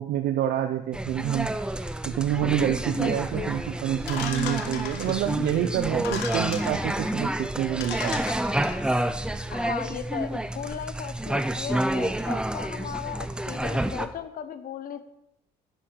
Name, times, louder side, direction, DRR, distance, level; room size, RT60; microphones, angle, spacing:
voice 1, 0.0-1.5 2.1-8.2, right 11 dB, 75° right, 7 dB, 0.8 m, -27 dB
sound 1, 0.9-14.1, right 1 dB, 5° right, 0.8 m, -29 dB
voice 2, 2.9-3.5 9.5-15.0, left 8 dB, 55° left, 12 dB, 1.1 m, -36 dB
sound 2, 4.1-5.4 5.9-7.0 7.5-7.6 7.8-9.0, left 7 dB, 85° left, 1.4 m, -36 dB
11.0 x 10.0 x 4.8 m, 0.81 s
cardioid pair, 110°, 17 cm